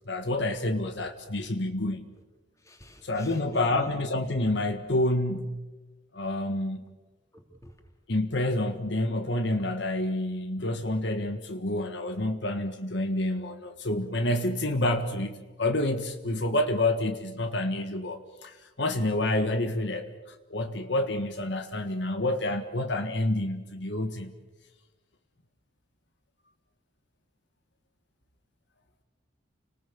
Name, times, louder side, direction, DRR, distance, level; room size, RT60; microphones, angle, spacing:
voice 1, 0.1-2.1 3.0-5.6 6.1-6.9 8.1-24.3, left 1 dB, 65° left, 7 dB, 1.6 m, -28 dB
voice 2, 2.6-3.9 7.3-7.7, left 1 dB, 15° left, 4 dB, 3.6 m, -48 dB
29.5 x 20.0 x 6.9 m, 1.2 s
head